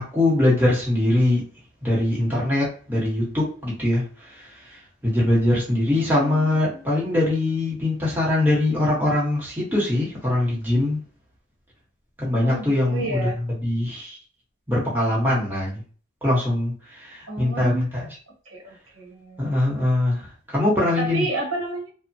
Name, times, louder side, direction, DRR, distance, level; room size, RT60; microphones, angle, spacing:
voice 1, 0.0-1.4 1.8-11.0 12.2-14.2 14.7-15.8 16.2-18.0 19.4-21.3, left 1 dB, 10° right, -6 dB, 0.9 m, -22 dB
voice 2, 5.9-6.9 12.4-13.4 17.3-17.9 18.5-19.5 21.0-21.9, right 2 dB, 85° right, -2 dB, 1.3 m, -31 dB
3.1 x 2.1 x 2.6 m, 0.41 s
head